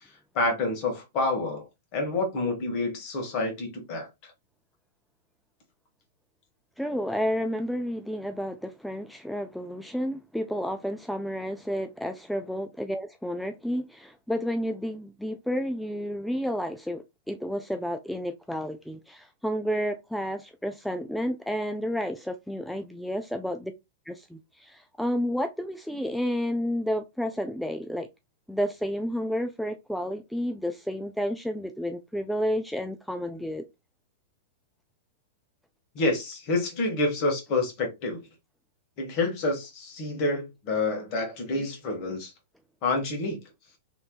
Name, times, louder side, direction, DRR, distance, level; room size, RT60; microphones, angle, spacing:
voice 1, 0.3-1.7 1.9-4.3 35.9-38.2 39.0-42.3 42.8-43.4, left 2 dB, 45° left, 1.5 m, -28 dB
voice 2, 6.8-23.7 24.1-28.1 28.5-33.6, equal, ahead, 0.3 m, -31 dB
3.2 x 3.1 x 2.3 m
hypercardioid pair, 110°, 0 cm